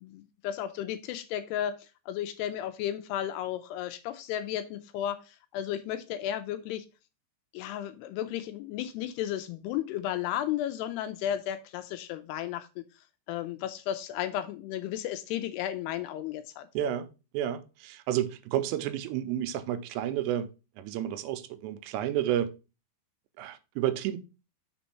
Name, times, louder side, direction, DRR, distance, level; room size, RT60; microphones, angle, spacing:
voice 1, 0.0-6.9 7.5-12.8 13.3-16.7, left 11 dB, 80° left, 2.5 m, -34 dB
voice 2, 16.7-17.1 17.3-20.5 20.8-22.5 23.4-24.2, right 11 dB, 90° right, 2.8 m, -31 dB
6.1 x 4.2 x 5.6 m
omnidirectional pair, 5.0 m